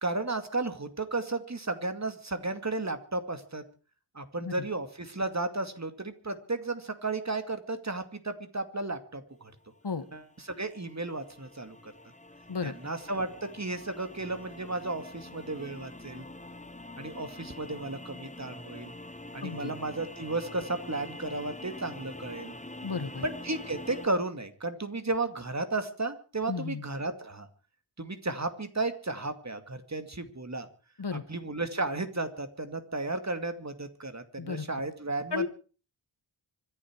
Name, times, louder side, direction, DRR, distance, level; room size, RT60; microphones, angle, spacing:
voice 1, 0.0-3.6 4.1-9.5 10.1-11.9 12.6-16.2 17.0-18.9 19.3-22.6 23.2-27.5 28.0-30.7 31.3-35.5, right 2 dB, 35° right, 9 dB, 2.3 m, -34 dB
sound 1, 9.6-24.1, left 1 dB, 15° left, 1.2 m, -45 dB
voice 2, 12.5-12.9 19.4-19.7 22.8-23.2 26.5-26.8 31.0-31.4 34.4-34.7 35.3-35.5, left 5 dB, 55° left, 12 dB, 1.7 m, -34 dB
25.5 x 11.0 x 4.7 m, 0.37 s
wide cardioid pair, 70°, 48 cm